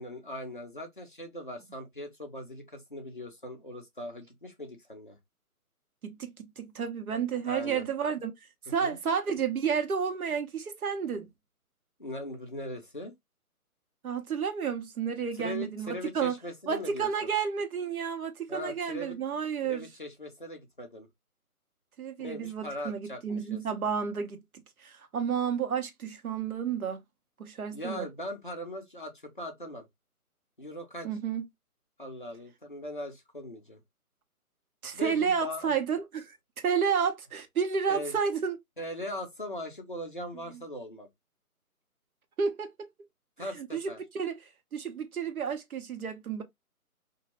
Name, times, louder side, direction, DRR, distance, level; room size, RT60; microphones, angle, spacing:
voice 1, 0.0-5.2 7.4-7.9 8.8-9.0 12.0-13.1 15.3-17.3 18.5-19.2 19.6-21.1 22.2-23.6 27.7-29.9 30.6-31.1 32.0-33.8 34.9-35.7 37.9-38.2 38.8-41.1 43.4-44.0, left 1 dB, 35° left, 0.4 m, -40 dB
voice 2, 6.0-8.3 8.7-11.3 14.0-16.4 16.7-19.8 22.0-24.4 24.8-27.0 27.4-28.1 31.0-31.4 34.8-38.6 42.4-42.9 43.6-44.4 44.7-46.4, right 6 dB, 70° right, 0.8 m, -31 dB
2.2 x 2.0 x 2.8 m
figure-of-eight pair, 155°, 45 cm